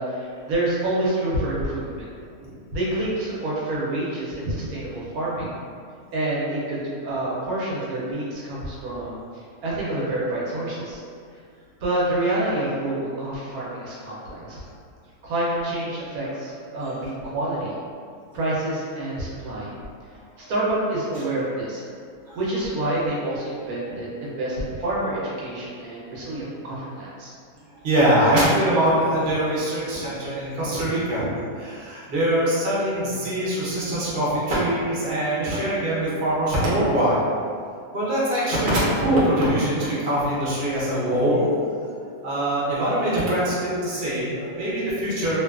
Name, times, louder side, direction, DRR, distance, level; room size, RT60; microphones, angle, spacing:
voice 1, 0.0-2.1 2.7-5.5 6.1-9.2 9.6-11.0 11.8-14.6 15.2-17.8 18.3-19.7 20.4-21.8 22.3-27.3, right 1 dB, 75° right, -6 dB, 1.1 m, -27 dB
voice 2, 26.1-26.4 27.8-37.2 37.9-41.5 42.2-45.4, right 1 dB, 50° right, -8 dB, 0.8 m, -23 dB
2.8 x 2.2 x 2.3 m, 2.2 s
omnidirectional pair, 1.6 m